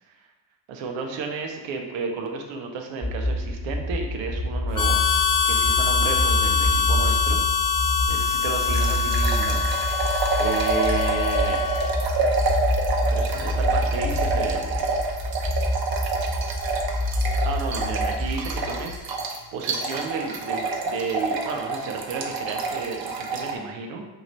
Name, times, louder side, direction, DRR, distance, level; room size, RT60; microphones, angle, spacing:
voice 1, 0.7-7.4 8.1-9.6 9.9-10.1 10.4-11.6 13.1-15.0 17.4-24.0, right 4 dB, 85° right, 3 dB, 0.7 m, -32 dB
sound 1, 3.0-19.0, left 1 dB, 5° left, 0.8 m, -27 dB
Harmonica, 4.7-12.0, left 6 dB, 50° left, 0.6 m, -24 dB
sound 2, 8.7-23.5, right 3 dB, 50° right, 0.8 m, -27 dB
5.5 x 2.5 x 3.1 m, 1.1 s
supercardioid pair, 50°, 45 cm